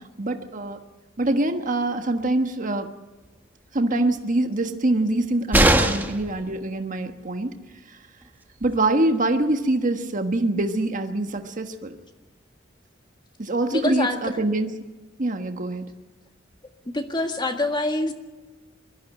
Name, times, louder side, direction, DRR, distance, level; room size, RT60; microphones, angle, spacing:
voice 1, 0.2-0.8 1.2-2.9 3.7-7.5 8.6-11.9 13.4-14.7 15.2-15.9, right 2 dB, 45° right, 6 dB, 1.4 m, -24 dB
sound 1, 5.5-6.3 8.2-8.3 8.6-8.7, right 1 dB, 10° right, 1.4 m, -19 dB
voice 2, 13.7-14.4 16.9-18.1, left 1 dB, 25° left, 5 dB, 1.7 m, -25 dB
22.5 x 14.5 x 9.4 m, 1.2 s
head